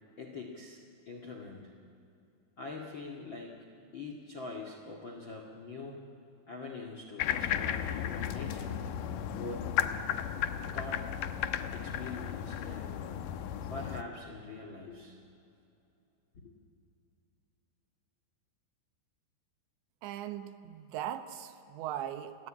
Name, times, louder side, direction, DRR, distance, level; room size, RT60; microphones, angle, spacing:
voice 1, 0.2-1.7 2.6-3.6 3.9-6.0 6.5-8.8 9.3-10.1 10.7-11.1 11.7-13.1 13.7-15.2 16.3-16.5, left 3 dB, 45° left, 3 dB, 1.6 m, -44 dB
sound 1, 7.2-14.0, left 9 dB, 85° left, 1.8 m, -34 dB
voice 2, 20.0-22.5, right 11 dB, 80° right, 10 dB, 3.3 m, -39 dB
30.0 x 22.5 x 8.9 m, 2.8 s
omnidirectional pair, 5.3 m